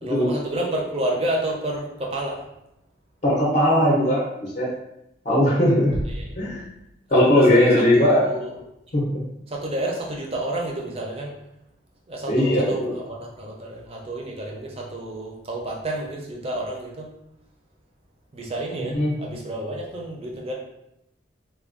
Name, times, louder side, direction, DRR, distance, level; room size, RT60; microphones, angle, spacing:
voice 1, 0.0-2.4 6.2-6.4 7.1-8.5 9.5-11.3 12.1-17.1 18.3-20.5, right 1 dB, 30° right, -1 dB, 0.5 m, -30 dB
voice 2, 3.2-4.7 5.2-6.0 6.4-6.7 7.1-8.3 8.9-9.2 12.3-13.0 18.8-19.3, left 1 dB, 35° left, -4 dB, 0.6 m, -19 dB
sound 1, 5.9-7.3, equal, 75° right, 0.8 m, -34 dB
3.4 x 2.2 x 2.4 m, 0.85 s
head